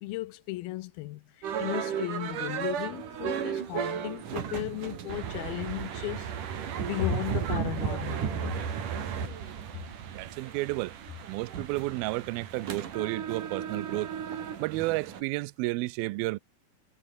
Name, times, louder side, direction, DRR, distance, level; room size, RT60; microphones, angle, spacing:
voice 1, 0.0-6.3 6.8-8.7, left 18 dB, 85° left, 2.6 m, -35 dB
sound 1, 1.4-15.2, right 8 dB, 60° right, 3.8 m, -34 dB
voice 2, 10.1-10.9 11.3-14.1 14.6-16.4, right 21 dB, 80° right, 2.5 m, -32 dB
omnidirectional pair, 4.4 m